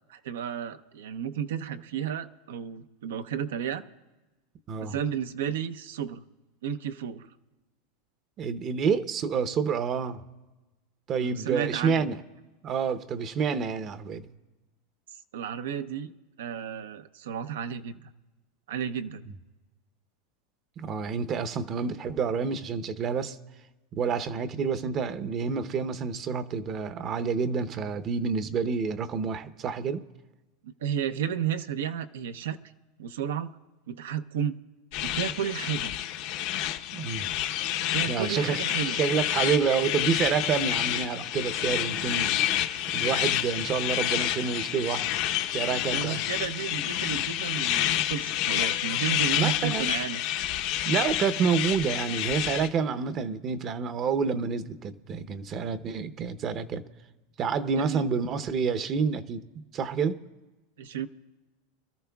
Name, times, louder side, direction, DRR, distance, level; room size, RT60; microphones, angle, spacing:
voice 1, 0.1-3.8 4.8-6.2 6.6-7.3 11.2-12.0 15.3-16.1 16.4-18.1 18.7-19.3 30.6-32.6 33.0-33.5 33.9-34.6 35.0-35.9 37.9-39.0 45.9-50.2 57.8-58.0 60.8-61.1, right 9 dB, 85° right, 0.8 m, -32 dB
voice 2, 8.4-10.2 11.1-12.2 12.6-14.3 20.8-23.4 23.9-30.0 36.9-37.3 38.0-38.6 38.8-42.4 42.9-45.2 45.5-46.2 49.4-49.9 50.8-56.8 57.4-59.4 59.7-60.2, right 6 dB, 35° right, 0.8 m, -28 dB
sound 1, 34.9-52.7, left 12 dB, 60° left, 0.8 m, -29 dB
26.0 x 13.0 x 2.3 m
supercardioid pair, 125°, 0 cm